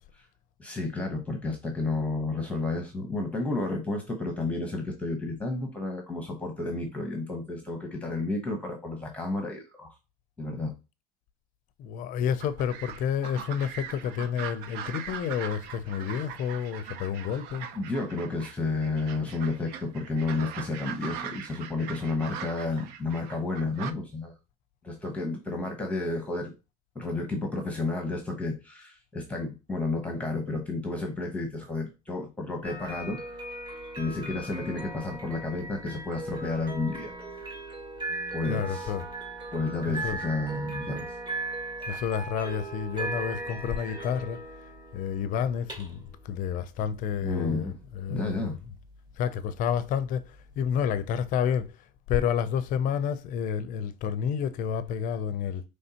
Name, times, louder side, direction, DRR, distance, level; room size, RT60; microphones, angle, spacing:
voice 1, 0.6-10.0 10.4-10.7 17.7-24.3 24.8-26.5 26.9-33.2 34.0-37.1 38.3-38.9 39.5-41.1 41.9-42.0 47.2-47.8 48.1-48.5, left 3 dB, 5° left, 1.0 m, -31 dB
voice 2, 11.8-17.7 38.5-39.0 40.0-40.2 41.9-44.4 44.9-47.7 47.9-48.5 49.2-50.3 50.6-51.8 52.1-55.6, left 8 dB, 45° left, 0.6 m, -29 dB
sound 1, 12.4-18.5 18.8-23.9, right 8 dB, 60° right, 0.6 m, -41 dB
sound 2, 32.6-51.6, right 2 dB, 25° right, 1.6 m, -38 dB
5.4 x 3.2 x 2.8 m
supercardioid pair, 135°, 19 cm